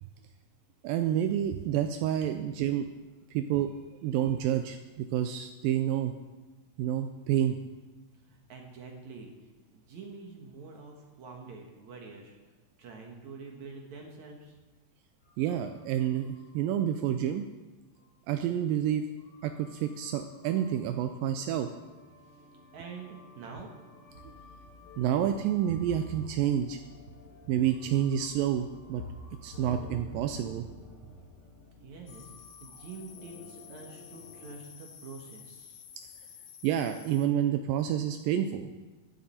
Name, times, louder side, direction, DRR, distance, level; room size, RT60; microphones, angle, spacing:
voice 1, 0.8-2.9 3.3-3.7 4.0-6.1 6.8-7.6 15.4-17.5 18.3-19.0 19.4-21.7 25.0-26.8 27.5-29.0 29.4-30.7 36.6-38.7, right 10 dB, 80° right, 7 dB, 2.2 m, -29 dB
voice 2, 8.3-9.3 9.7-12.3 12.8-14.5 22.7-23.7 31.8-32.3 32.6-35.8, right 4 dB, 60° right, 1 dB, 2.4 m, -46 dB
sound 1, 15.2-16.8 17.1-17.2 18.0-18.1 19.2-34.5, left 2 dB, 40° left, 4.2 m, -49 dB
sound 2, 32.1-37.3, left 8 dB, 70° left, 1.5 m, -51 dB
15.5 x 11.0 x 4.3 m, 1.2 s
omnidirectional pair, 4.2 m